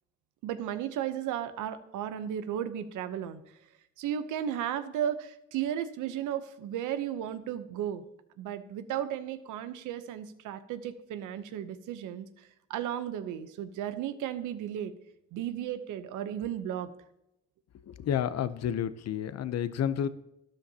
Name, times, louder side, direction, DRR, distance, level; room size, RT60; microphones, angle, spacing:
voice 1, 0.4-3.4 4.0-8.0 8.4-14.9 15.3-16.9, right 10 dB, 90° right, 12 dB, 0.8 m, -34 dB
voice 2, 17.9-20.1, left 9 dB, 60° left, 14 dB, 0.7 m, -30 dB
13.0 x 10.5 x 2.8 m, 0.85 s
cardioid pair, 90°, 30 cm